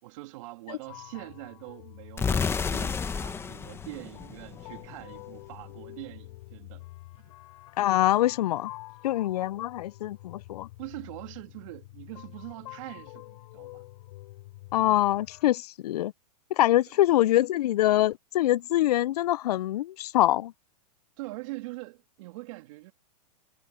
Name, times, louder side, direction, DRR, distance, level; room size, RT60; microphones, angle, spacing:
voice 1, 0.0-6.9 7.2-7.3 10.8-13.8 21.2-22.9, right 21 dB, 50° right, 3.0 m, -43 dB
sound 1, 0.9-15.5, left 19 dB, 55° left, 6.3 m, -47 dB
sound 2, 2.2-5.0, left 5 dB, 10° left, 1.3 m, -31 dB
voice 2, 7.8-8.7 9.0-10.7 14.7-16.1 16.5-20.5, left 14 dB, 70° left, 0.5 m, -24 dB
hypercardioid pair, 135°, 21 cm